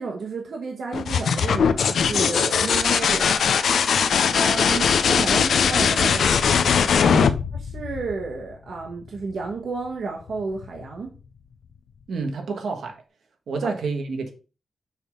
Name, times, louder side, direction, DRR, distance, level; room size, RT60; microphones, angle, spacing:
voice 1, 0.0-3.3 3.8-3.9 4.3-6.3 7.7-11.1, right 4 dB, 60° right, 1.1 m, -31 dB
sound 1, 0.9-8.5 10.3-10.9, left 6 dB, 80° left, 0.5 m, -20 dB
voice 2, 7.0-7.4 12.1-13.0 13.5-14.3, right 4 dB, 80° right, 1.4 m, -28 dB
6.6 x 3.6 x 5.1 m
wide cardioid pair, 170°, 0 cm